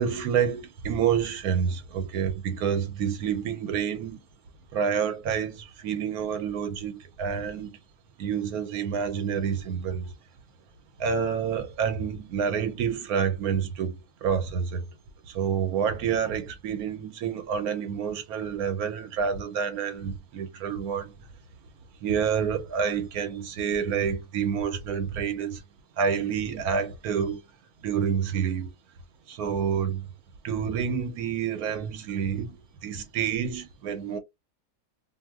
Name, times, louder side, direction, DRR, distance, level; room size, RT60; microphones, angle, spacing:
voice 1, 0.0-4.2 4.7-7.8 8.2-10.1 11.0-13.9 14.2-14.8 15.3-21.1 22.0-25.6 26.0-27.4 27.8-28.7 29.3-30.1 30.4-32.6 32.8-34.2, right 7 dB, 80° right, 1.1 m, -28 dB
2.6 x 2.0 x 3.4 m
omnidirectional pair, 1.6 m